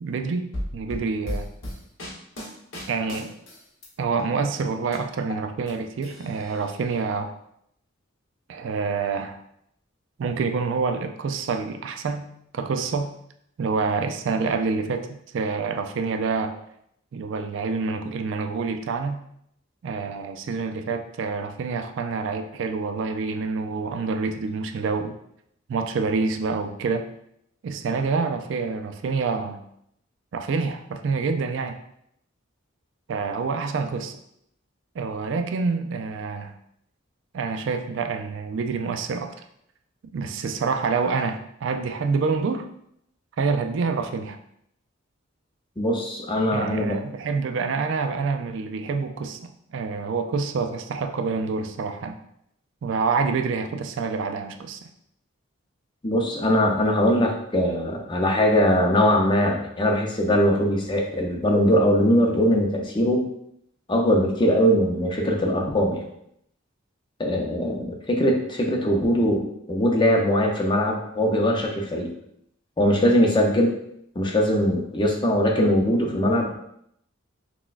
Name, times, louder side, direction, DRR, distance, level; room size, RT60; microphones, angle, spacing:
voice 1, 0.0-1.5 2.9-3.3 4.0-7.3 8.5-9.4 10.2-12.3 12.5-13.1 13.6-16.6 17.1-19.2 19.8-25.2 25.7-27.1 27.6-29.6 30.3-31.8 33.1-34.1 35.0-36.5 37.3-39.3 40.1-42.7 43.4-44.4 46.5-52.2 52.8-54.8, right 4 dB, 65° right, 6 dB, 0.3 m, -27 dB
sound 1, 0.5-3.9 4.2-5.7 6.0-6.9, equal, 85° left, 1.1 m, -36 dB
voice 2, 45.8-46.9 56.0-63.2 63.9-66.0 67.2-69.4 69.7-72.1 72.8-73.7 74.2-76.6, equal, 25° left, 0 dB, 0.5 m, -21 dB
5.8 x 2.2 x 2.4 m, 0.74 s
head